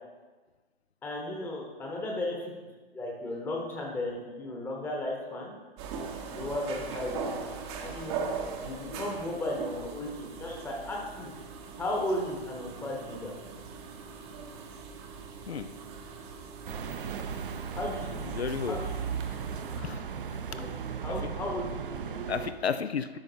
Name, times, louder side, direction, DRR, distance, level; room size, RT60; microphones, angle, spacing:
voice 1, 1.0-2.5 2.9-5.5 6.3-7.3 7.8-8.1 8.6-11.3 11.8-13.3 17.8-18.4 18.6-19.1 20.2-22.3, left 1 dB, 5° left, -2 dB, 0.9 m, -35 dB
sound 1, 5.8-19.8, right 5 dB, 25° right, 0.7 m, -40 dB
sound 2, 16.7-22.5, right 7 dB, 60° right, 0.6 m, -36 dB
voice 2, 18.3-18.8 19.8-20.0 20.5-20.7 21.1-21.4 22.3-23.2, left 6 dB, 85° left, 11 dB, 0.5 m, -33 dB
12.5 x 5.3 x 2.7 m, 1.3 s
figure-of-eight pair, 120°, 31 cm